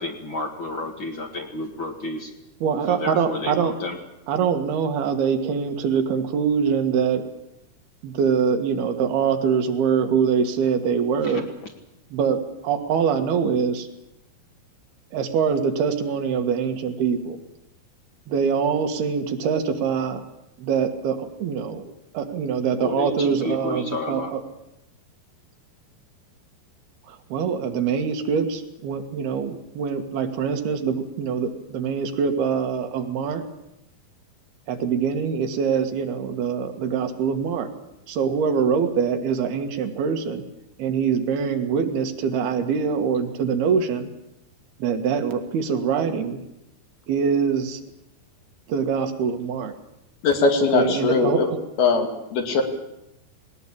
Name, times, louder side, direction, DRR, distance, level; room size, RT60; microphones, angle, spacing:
voice 1, 0.0-2.3 2.9-4.0 11.2-11.4 22.8-24.3, left 2 dB, 40° left, 4 dB, 2.0 m, -31 dB
voice 2, 2.6-3.7 4.3-7.2 8.0-11.4 12.1-13.9 15.1-17.4 18.3-20.2 20.6-24.4 27.1-33.4 34.7-37.7 38.1-40.4 40.8-44.1 44.8-46.4 47.1-47.8 48.7-49.7 50.7-51.6, right 6 dB, 80° right, 6 dB, 3.7 m, -24 dB
voice 3, 50.2-51.5 51.8-52.6, left 4 dB, 75° left, 4 dB, 4.5 m, -20 dB
20.0 x 19.0 x 8.7 m, 0.85 s
omnidirectional pair, 4.5 m